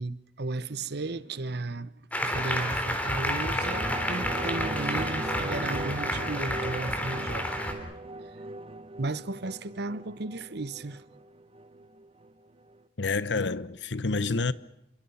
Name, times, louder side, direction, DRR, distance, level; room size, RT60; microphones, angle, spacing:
voice 1, 0.0-1.9 2.2-7.6 9.0-11.0, right 2 dB, 65° right, 1.0 m, -34 dB
Applause, 2.1-7.7, left 1 dB, 10° left, 3.9 m, -30 dB
sound 1, 3.3-12.3 12.7-12.8, right 2 dB, 35° right, 1.2 m, -39 dB
voice 2, 13.0-14.5, left 3 dB, 80° left, 1.0 m, -28 dB
29.0 x 23.5 x 5.7 m
head